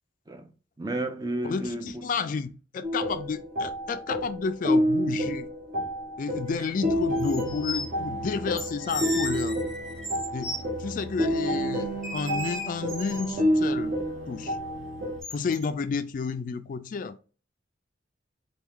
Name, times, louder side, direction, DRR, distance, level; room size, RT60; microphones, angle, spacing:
voice 1, 0.8-2.1, right 2 dB, 20° right, 0.5 m, -32 dB
voice 2, 1.4-5.5 6.2-9.6 10.3-13.9 14.3-14.6 15.3-17.2, left 5 dB, 45° left, 0.3 m, -31 dB
sound 1, 2.8-15.2, equal, 45° right, 1.0 m, -29 dB
sound 2, 6.6-6.7 7.2-7.9 8.6-10.6 12.0-13.4 15.2-15.6, equal, ahead, 0.9 m, -35 dB
4.5 x 2.3 x 3.5 m
head